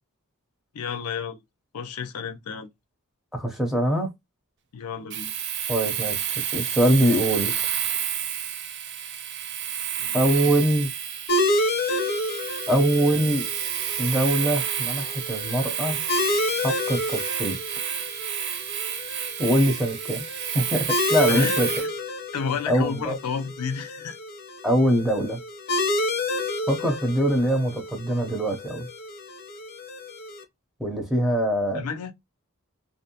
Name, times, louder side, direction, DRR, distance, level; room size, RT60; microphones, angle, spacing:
voice 1, 0.7-1.4 1.7-2.7 4.7-5.3 10.0-10.2 21.3-21.5 22.3-24.2 31.7-32.1, left 6 dB, 85° left, 0.5 m, -31 dB
voice 2, 3.3-4.1 5.7-6.2 6.5-7.5 10.1-10.9 12.7-13.5 14.0-16.0 16.6-17.6 19.4-20.3 20.5-21.7 22.7-23.2 24.6-25.4 26.7-28.9 30.8-31.9, right 1 dB, ahead, 0.6 m, -23 dB
Domestic sounds home sounds, 5.1-21.9, right 9 dB, 50° right, 0.4 m, -30 dB
sound 1, 11.3-30.4, left 2 dB, 45° left, 0.7 m, -30 dB
2.6 x 2.0 x 2.8 m
head